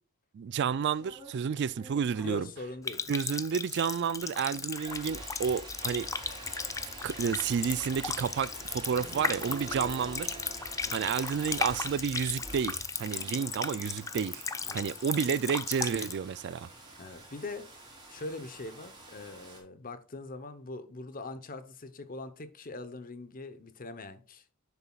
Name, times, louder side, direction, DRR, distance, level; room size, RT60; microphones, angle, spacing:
voice 1, 0.3-2.5 3.1-6.1 7.0-10.4 10.9-14.5 14.7-16.7, right 7 dB, 55° right, 0.3 m, -31 dB
sound 1, 0.8-19.6, right 2 dB, 20° right, 3.2 m, -48 dB
voice 2, 2.2-3.0 10.8-11.1 14.6-14.9 17.0-17.7 18.1-24.4, left 2 dB, 40° left, 0.9 m, -42 dB
Water tap faucet, 2.8-16.2, left 5 dB, 15° left, 0.4 m, -36 dB
sound 2, 8.9-11.5, right 4 dB, 40° right, 0.9 m, -47 dB
10.5 x 7.1 x 2.4 m
head